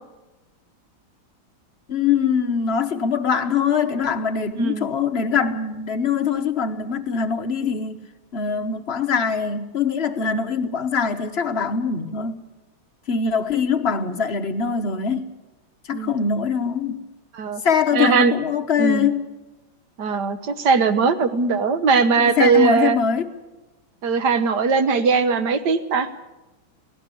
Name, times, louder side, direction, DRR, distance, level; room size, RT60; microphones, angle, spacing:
voice 1, 1.9-8.0 8.3-12.4 13.1-15.2 15.8-17.0 17.6-19.2 22.2-23.3, left 6 dB, 40° left, 0.9 m, -22 dB
voice 2, 4.6-4.9 15.9-16.1 17.3-17.6 17.9-18.3 18.8-19.1 20.0-23.0 24.0-26.1, right 5 dB, 60° right, 1.5 m, -20 dB
17.5 x 17.5 x 8.4 m
omnidirectional pair, 2.3 m